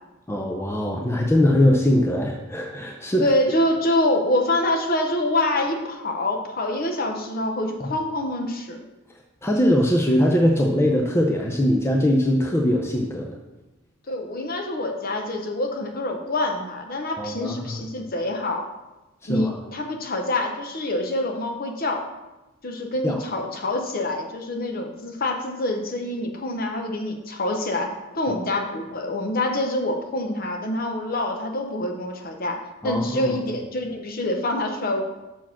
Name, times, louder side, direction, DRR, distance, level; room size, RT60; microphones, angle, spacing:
voice 1, 0.3-3.3 7.8-7.9 9.4-13.4 17.2-17.8 19.2-19.6 23.0-23.2 32.8-33.4, left 1 dB, 10° left, 1 dB, 0.5 m, -21 dB
voice 2, 3.2-8.8 14.1-18.7 19.3-22.0 22.6-32.6 32.8-35.0, left 1 dB, 45° left, 3 dB, 0.9 m, -26 dB
6.0 x 4.6 x 5.8 m, 1.1 s
head